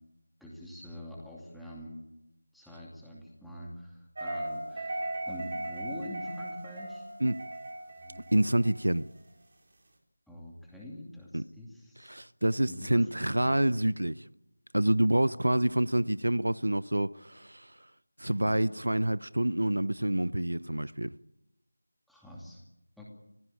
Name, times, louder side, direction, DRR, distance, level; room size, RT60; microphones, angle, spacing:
voice 1, 0.4-2.0 2.5-7.1 8.0-8.3 10.3-12.2 12.7-13.7 18.4-18.6 22.1-22.6 23.0-23.1, left 1 dB, ahead, 2.5 m, -45 dB
sound 1, 4.2-9.2, right 1 dB, 40° right, 4.5 m, -38 dB
voice 2, 8.3-9.1 11.3-11.4 12.0-14.2 14.7-17.7 18.2-21.1, right 1 dB, 70° right, 0.7 m, -27 dB
24.5 x 15.5 x 8.6 m
figure-of-eight pair, 165°, 0 cm